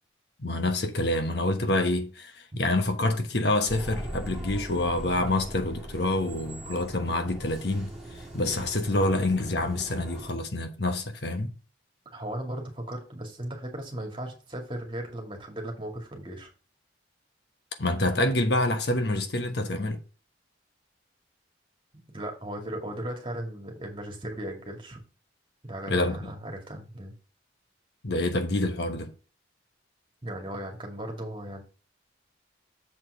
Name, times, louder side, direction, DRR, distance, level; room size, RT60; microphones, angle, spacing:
voice 1, 0.4-7.9 8.3-11.5 17.8-20.0 25.9-26.3 28.0-29.1, left 2 dB, 60° left, 1.1 m, -27 dB
sound 1, 3.7-10.3, right 1 dB, ahead, 2.4 m, -40 dB
voice 2, 12.1-16.5 22.1-25.0 25.6-27.1 30.2-31.6, right 1 dB, 25° right, 2.1 m, -37 dB
7.2 x 4.5 x 5.6 m
head